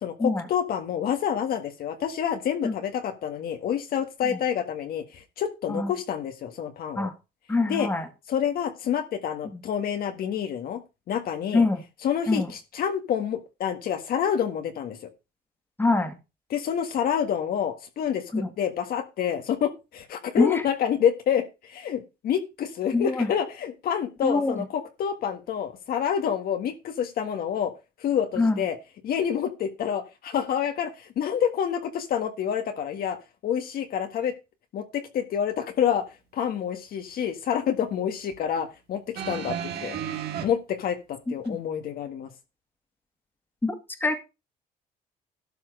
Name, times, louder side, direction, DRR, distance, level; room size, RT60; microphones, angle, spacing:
voice 1, 0.0-7.1 7.7-7.9 8.3-10.8 11.1-11.6 12.0-15.0 16.5-27.7 28.0-28.8 29.0-33.2 33.4-34.3 34.7-36.1 36.3-40.0 40.4-42.3, left 8 dB, 60° left, 6 dB, 1.6 m, -28 dB
voice 2, 7.5-8.1 9.5-9.6 11.5-11.8 12.3-12.5 15.8-16.2 18.3-18.5 20.4-20.6 22.9-23.3 24.2-24.6 28.4-28.6 41.5-41.6 43.6-43.7 44.0-44.2, left 3 dB, 10° left, 7 dB, 2.0 m, -24 dB
sound 1, 39.1-40.4 41.4-41.5, right 8 dB, 75° right, 2.2 m, -32 dB
12.5 x 4.5 x 6.4 m, 0.27 s
cardioid pair, 110°, 17 cm